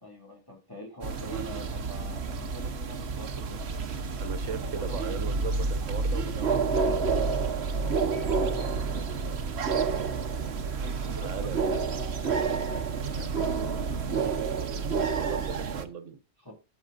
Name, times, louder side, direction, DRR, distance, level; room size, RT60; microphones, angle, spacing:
voice 1, 0.0-3.3 4.2-5.3 7.7-9.5 9.8-10.0 10.8-14.3 16.4-16.5, left 1 dB, 15° left, -1 dB, 2.7 m, -45 dB
sound 1, 1.0-15.8, right 4 dB, 60° right, 1.2 m, -29 dB
voice 2, 4.2-7.3 11.2-11.6 15.1-16.2, right 6 dB, 85° right, 10 dB, 1.4 m, -38 dB
17.0 x 6.5 x 2.6 m, 0.30 s
omnidirectional pair, 1.3 m